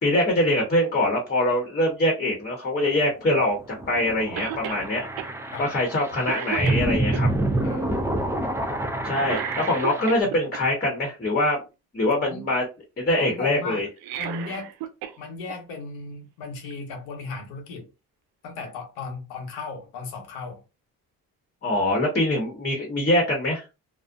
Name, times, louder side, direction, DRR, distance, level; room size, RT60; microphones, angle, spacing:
voice 1, 0.0-5.1 5.6-7.3 9.0-11.6 11.9-12.6 13.0-13.9 21.6-23.6, left 1 dB, 25° left, 1.0 m, -23 dB
sound 1, 3.3-10.2, right 1 dB, 5° right, 0.5 m, -28 dB
Cough, 4.4-4.8 5.2-5.3 5.8-6.0 6.3-7.2 9.2-10.6 13.9-15.2 15.5-15.6 16.7-16.8, right 10 dB, 70° right, 0.5 m, -33 dB
voice 2, 13.2-13.8 14.2-14.7 15.2-17.9 18.4-20.6, left 4 dB, 85° left, 1.0 m, -36 dB
2.4 x 2.1 x 2.5 m
supercardioid pair, 80°, 37 cm